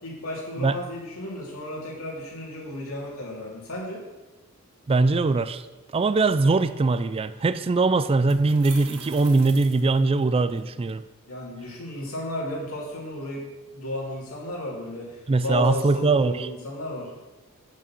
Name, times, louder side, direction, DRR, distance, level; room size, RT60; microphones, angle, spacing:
voice 1, 0.0-4.0 11.3-13.4 13.7-17.1, left 1 dB, 70° left, 3.1 m, -33 dB
voice 2, 4.9-5.6 5.9-11.0 15.3-16.5, right 3 dB, 25° right, 0.3 m, -21 dB
sound 1, 8.1-10.6, right 6 dB, 75° right, 1.6 m, -43 dB
9.6 x 6.3 x 6.0 m
head